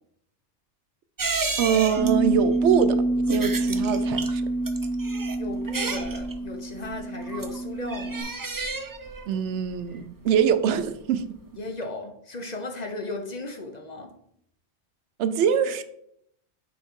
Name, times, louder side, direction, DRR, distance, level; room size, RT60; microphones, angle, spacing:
sound 1, 1.2-11.1 11.4-11.5, right 3 dB, 30° right, 0.4 m, -33 dB
voice 1, 1.6-3.0 3.3-4.4 9.3-11.3 15.2-15.8, right 8 dB, 80° right, 0.9 m, -23 dB
Bass guitar, 2.0-8.2, right 2 dB, 60° left, 1.3 m, -27 dB
voice 2, 5.4-8.2 11.6-14.1, left 2 dB, 45° left, 0.8 m, -36 dB
7.0 x 5.0 x 3.6 m
omnidirectional pair, 1.2 m